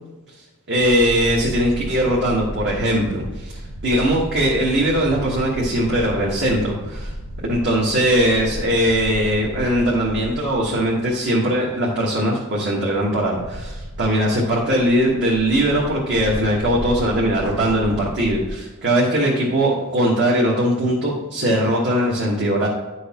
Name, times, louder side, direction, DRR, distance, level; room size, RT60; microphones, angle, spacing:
voice 1, 0.7-7.1 7.5-22.7, equal, 50° right, -5 dB, 1.4 m, -20 dB
sound 1, 0.8-11.4 11.7-11.8 12.9-18.5, equal, 70° right, 1.2 m, -33 dB
10.5 x 6.3 x 3.0 m, 1.2 s
head